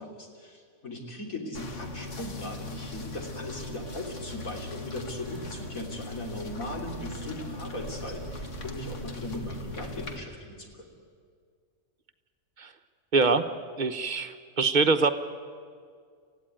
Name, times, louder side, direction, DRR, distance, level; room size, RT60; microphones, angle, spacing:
voice 1, 0.0-10.9, left 1 dB, 85° left, 1 dB, 3.6 m, -38 dB
sound 1, 1.5-10.2, left 1 dB, 65° left, 2.2 m, -39 dB
voice 2, 13.1-13.5 13.8-15.1, right 4 dB, 40° right, 7 dB, 1.1 m, -24 dB
28.0 x 15.5 x 9.2 m, 2.1 s
omnidirectional pair, 1.4 m